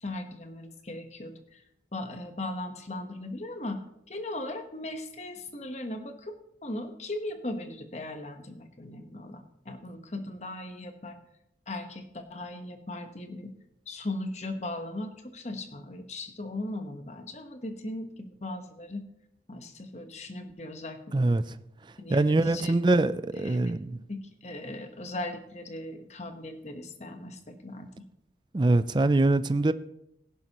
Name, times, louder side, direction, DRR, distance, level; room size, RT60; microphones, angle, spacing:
voice 1, 0.0-1.6 1.9-3.8 4.1-11.2 11.7-13.5 13.9-19.0 19.5-21.3 22.0-22.8 23.4-23.7 24.1-27.9, left 1 dB, 40° left, 1.1 m, -38 dB
voice 2, 21.1-21.6 22.1-24.0 28.5-29.7, right 2 dB, 25° right, 0.4 m, -24 dB
16.5 x 11.0 x 3.0 m
head